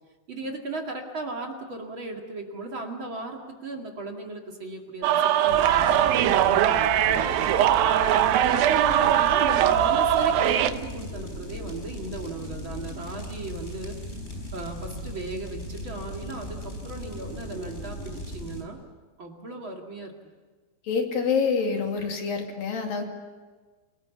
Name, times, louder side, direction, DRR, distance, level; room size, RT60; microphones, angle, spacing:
voice 1, 0.3-7.6 8.5-14.0 14.5-18.8 19.2-20.1, right 3 dB, 40° right, 1 dB, 1.9 m, -36 dB
sound 1, 5.0-10.7, right 11 dB, 80° right, 2.1 m, -21 dB
sound 2, 5.5-18.6, equal, 15° left, 4.3 m, -37 dB
voice 2, 20.9-23.0, left 5 dB, 50° left, 3 dB, 3.9 m, -26 dB
29.0 x 18.5 x 8.5 m, 1.4 s
omnidirectional pair, 5.5 m